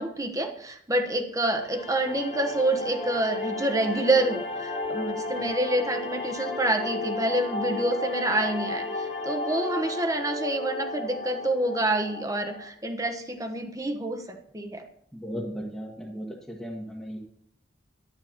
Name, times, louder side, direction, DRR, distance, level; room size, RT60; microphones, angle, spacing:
voice 1, 0.0-14.8, right 1 dB, 20° right, 6 dB, 1.2 m, -27 dB
sound 1, 1.6-12.7, left 2 dB, 40° left, 2.1 m, -34 dB
voice 2, 15.1-17.2, equal, ahead, -5 dB, 1.4 m, -36 dB
11.5 x 10.0 x 4.4 m, 0.71 s
head